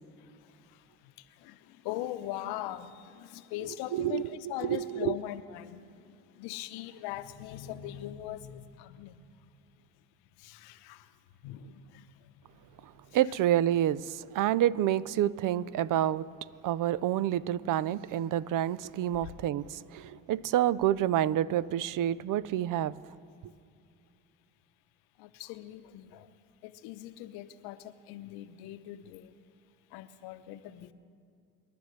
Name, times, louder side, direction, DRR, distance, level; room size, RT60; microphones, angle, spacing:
voice 1, 1.4-9.2 10.4-11.1 11.4-12.3 19.2-19.3 25.2-26.3 26.6-29.3 29.9-30.9, left 13 dB, 75° left, 0.9 m, -41 dB
voice 2, 3.9-4.3 4.7-5.1 13.1-16.3 16.6-22.9, right 12 dB, 55° right, 0.6 m, -28 dB
27.0 x 11.5 x 3.3 m
supercardioid pair, 70°, 39 cm